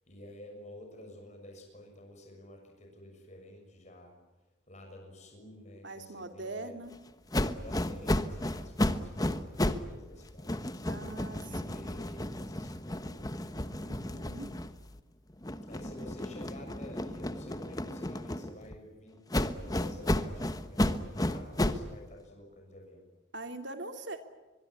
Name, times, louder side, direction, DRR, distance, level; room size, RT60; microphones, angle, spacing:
voice 1, 0.1-4.1 4.7-6.8 7.6-13.3 14.1-14.3 15.6-23.0, left 1 dB, 35° left, 2 dB, 6.7 m, -51 dB
voice 2, 5.8-6.9 10.9-11.9 13.8-14.5 23.3-24.2, right 2 dB, 60° right, 6 dB, 3.0 m, -42 dB
sound 1, 7.3-9.9 10.2-15.0 15.4-18.8 19.3-21.9, left 1 dB, 20° left, 1.2 m, -33 dB
24.0 x 22.5 x 9.7 m, 1.2 s
head